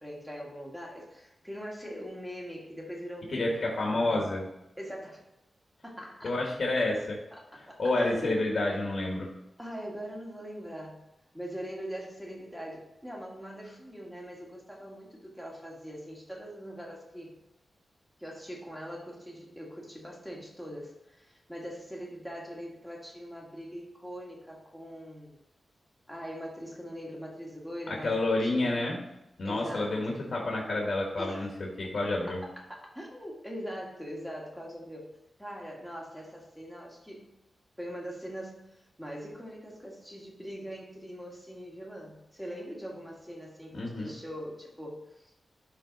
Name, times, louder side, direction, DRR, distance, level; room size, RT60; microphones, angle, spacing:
voice 1, 0.0-3.5 3.9-4.2 4.8-5.2 5.8-6.3 7.4-8.4 9.6-11.0 11.3-17.4 18.2-25.4 26.1-28.8 29.4-30.2 31.2-31.5 32.3-32.4 32.7-35.1 35.4-37.3 37.8-45.3, equal, ahead, -2 dB, 1.7 m, -42 dB
voice 2, 3.3-4.4 6.2-7.2 7.8-9.3 27.9-29.0 29.4-32.4 43.7-44.1, left 2 dB, 50° left, -1 dB, 1.5 m, -29 dB
11.5 x 3.9 x 4.0 m, 0.92 s
wide cardioid pair, 175°, 0 cm